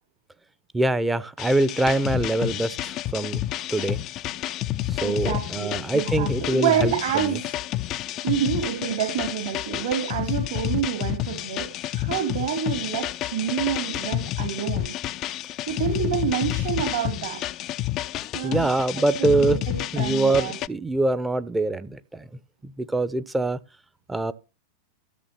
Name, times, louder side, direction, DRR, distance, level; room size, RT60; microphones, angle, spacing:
voice 1, 0.7-3.4 3.7-4.0 4.9-7.4 18.4-19.6 19.9-22.3 22.6-23.6 24.1-24.3, right 2 dB, 10° right, 0.9 m, -24 dB
sound 1, 1.4-20.7, left 14 dB, 35° left, 0.6 m, -30 dB
voice 2, 5.0-7.6 8.2-14.9 15.7-17.4 18.3-18.7 19.0-20.6, right 8 dB, 60° right, 4.1 m, -28 dB
13.5 x 7.1 x 5.8 m
figure-of-eight pair, 90°, 0 cm